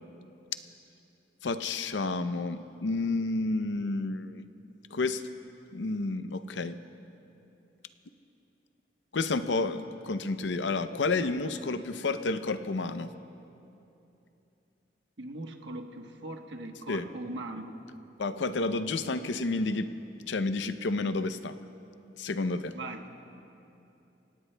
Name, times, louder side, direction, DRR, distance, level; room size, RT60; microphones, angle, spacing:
voice 1, 1.4-4.4 4.9-5.2 5.7-6.8 9.1-13.1 16.9-17.1 18.2-19.9 20.3-21.5 22.2-22.7, left 3 dB, 90° left, 11 dB, 0.6 m, -30 dB
voice 2, 15.2-17.8 22.7-23.1, right 2 dB, 90° right, 4 dB, 1.2 m, -40 dB
28.0 x 18.0 x 2.2 m, 2.8 s
head